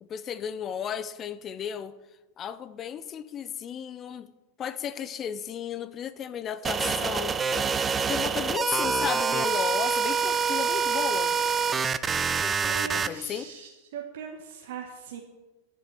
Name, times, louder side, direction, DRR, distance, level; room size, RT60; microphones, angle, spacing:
voice 1, 0.0-2.0 2.4-4.3 4.6-7.7 8.1-11.4 12.4-13.5, left 8 dB, 25° left, 0.6 m, -34 dB
sound 1, 6.6-13.1, right 6 dB, 20° right, 0.5 m, -26 dB
voice 2, 12.6-15.2, right 7 dB, 55° right, 1.1 m, -40 dB
11.0 x 6.8 x 7.7 m
figure-of-eight pair, 90°, 0 cm